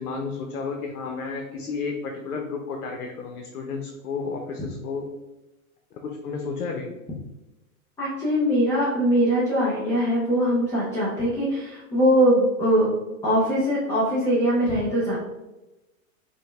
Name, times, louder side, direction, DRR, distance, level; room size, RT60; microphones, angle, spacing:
voice 1, 0.0-5.1 5.9-6.9, left 4 dB, 90° left, 2 dB, 0.7 m, -32 dB
voice 2, 8.0-12.9 13.2-15.2, equal, 5° left, -6 dB, 0.4 m, -22 dB
5.1 x 2.1 x 3.2 m, 1.0 s
hypercardioid pair, 135°, 43 cm